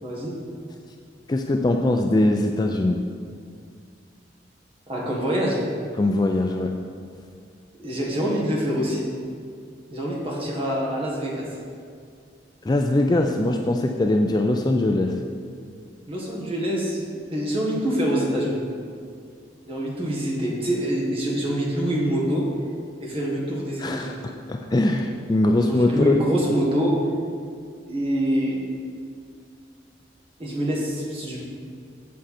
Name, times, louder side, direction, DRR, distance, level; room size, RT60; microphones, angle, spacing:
voice 1, 0.0-0.4 4.9-5.6 7.8-9.0 9.9-11.4 16.1-18.6 19.7-22.4 23.0-24.2 25.6-26.9 27.9-28.6 30.4-31.4, equal, 30° right, -4 dB, 1.6 m, -25 dB
voice 2, 1.3-3.0 6.0-6.7 12.6-15.1 23.8-26.5, left 2 dB, 20° left, 4 dB, 0.3 m, -22 dB
7.5 x 7.4 x 4.3 m, 2.2 s
head